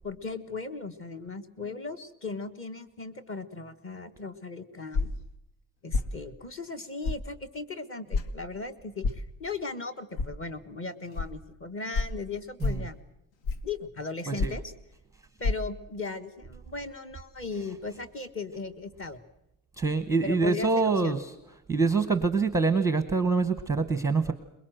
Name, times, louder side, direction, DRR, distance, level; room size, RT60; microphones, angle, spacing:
voice 1, 0.0-5.1 5.8-13.0 13.6-14.7 15.4-19.2 20.2-21.2, left 3 dB, 30° left, 9 dB, 1.3 m, -37 dB
sound 1, 4.9-5.3 5.9-6.1 7.0-7.2 8.1-8.3 9.0-9.2 10.2-10.3 11.1-11.3 11.9-12.2 12.6-12.9 13.4-13.7 14.4-14.7 15.4-15.5, left 3 dB, 75° left, 1.8 m, -28 dB
voice 2, 19.8-21.3 21.7-24.3, right 4 dB, 5° right, 10 dB, 0.8 m, -25 dB
23.0 x 21.5 x 7.7 m, 0.85 s
cardioid pair, 180°, 46 cm